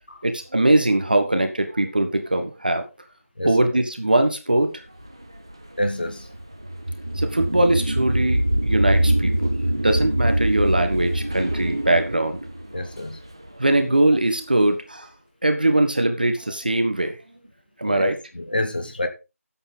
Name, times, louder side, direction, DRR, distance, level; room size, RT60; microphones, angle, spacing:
voice 1, 0.2-2.8 3.4-4.8 7.1-9.6 9.8-12.4 13.6-15.1 15.4-17.2 17.8-18.1, right 1 dB, 35° right, 1.4 m, -21 dB
sound 1, 5.0-14.0, right 1 dB, 20° right, 0.7 m, -24 dB
voice 2, 5.8-6.3 12.7-13.2 17.8-19.1, left 1 dB, 35° left, 1.7 m, -27 dB
14.0 x 8.1 x 3.8 m
figure-of-eight pair, 180°, 8 cm